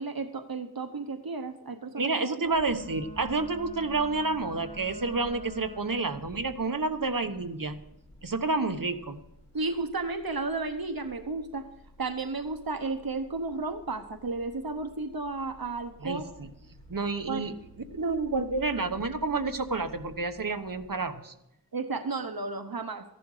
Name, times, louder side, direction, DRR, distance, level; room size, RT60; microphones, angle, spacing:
voice 1, 0.0-2.4 9.5-11.7 12.0-16.2 17.3-17.4 21.7-23.0, right 3 dB, 85° right, 7 dB, 1.0 m, -33 dB
voice 2, 2.0-7.8 8.2-9.2 16.0-16.5 16.9-17.5 17.9-21.3, right 3 dB, 70° right, 8 dB, 1.2 m, -29 dB
sound 1, 2.4-20.9, equal, 10° left, 5.7 m, -53 dB
Wind instrument woodwind instrument, 2.7-6.3, left 1 dB, 55° left, 3.4 m, -46 dB
15.0 x 11.0 x 4.9 m, 0.84 s
wide cardioid pair, 40°, 35 cm